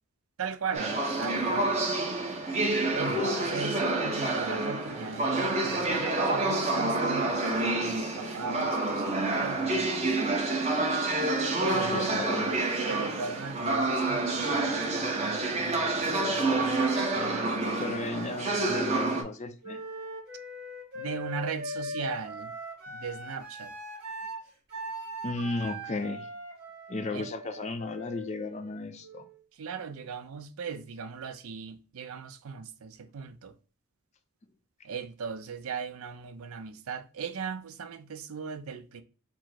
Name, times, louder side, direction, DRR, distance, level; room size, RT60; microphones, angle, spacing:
voice 1, 0.4-1.7 2.9-10.1 11.6-16.9 17.1-18.0 21.0-22.5 22.9-23.7 27.1-27.3 29.6-33.5 34.8-39.0, right 5 dB, 70° right, 0.5 m, -38 dB
sound 1, 0.7-19.2, right 2 dB, 30° right, 0.7 m, -28 dB
voice 2, 3.1-3.5 11.7-12.5 17.8-19.8 25.2-26.3 26.9-29.3, left 3 dB, 30° left, 0.4 m, -35 dB
Wind instrument woodwind instrument, 19.6-29.4, equal, 45° right, 2.1 m, -40 dB
4.4 x 2.0 x 4.2 m
head